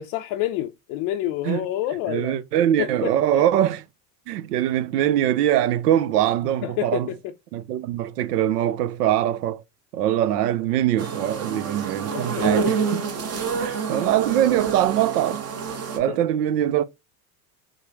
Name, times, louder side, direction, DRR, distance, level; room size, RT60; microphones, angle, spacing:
voice 1, 0.0-2.4 2.8-3.4 6.6-7.2 12.1-12.7 16.1-16.2, left 13 dB, 45° left, 0.5 m, -28 dB
voice 2, 2.1-3.8 4.3-7.1 7.5-9.6 9.9-13.0 13.5-15.4 16.0-16.8, right 11 dB, 75° right, 0.6 m, -22 dB
sound 1, 11.0-16.0, right 5 dB, 30° right, 1.0 m, -28 dB
4.7 x 2.1 x 2.8 m
hypercardioid pair, 85°, 47 cm